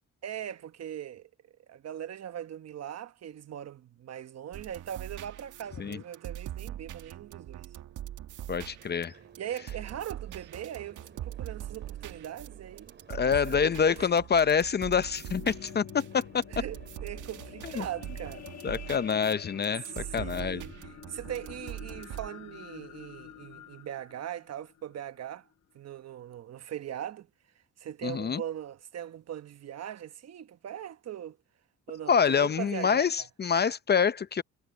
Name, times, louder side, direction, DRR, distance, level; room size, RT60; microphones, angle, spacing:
voice 1, 0.2-1.3 1.7-7.7 9.4-13.5 13.9-14.1 16.5-18.5 20.0-25.5 25.7-27.3 27.8-31.4 31.9-33.3, right 10 dB, 55° right, 1.2 m, -40 dB
sound 1, 4.5-22.3, right 12 dB, 80° right, 2.0 m, -42 dB
voice 2, 8.5-9.1 13.1-16.4 17.6-17.9 18.6-20.6 28.0-28.4 32.1-34.4, left 6 dB, 35° left, 0.7 m, -26 dB
sound 2, 8.6-17.8, right 6 dB, 35° right, 3.3 m, -58 dB
sound 3, 15.0-25.4 26.0-26.1, left 10 dB, 60° left, 1.5 m, -48 dB
cardioid pair, 90°, 30 cm